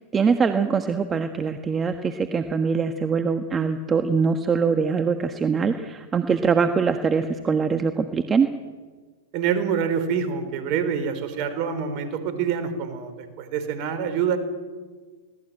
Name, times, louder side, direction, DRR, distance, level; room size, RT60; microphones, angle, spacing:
voice 1, 0.1-8.5, right 5 dB, 20° right, 7 dB, 1.4 m, -23 dB
voice 2, 9.3-14.4, right 7 dB, 45° right, 10 dB, 4.5 m, -26 dB
24.0 x 18.0 x 9.0 m, 1.4 s
hypercardioid pair, 110°, 0 cm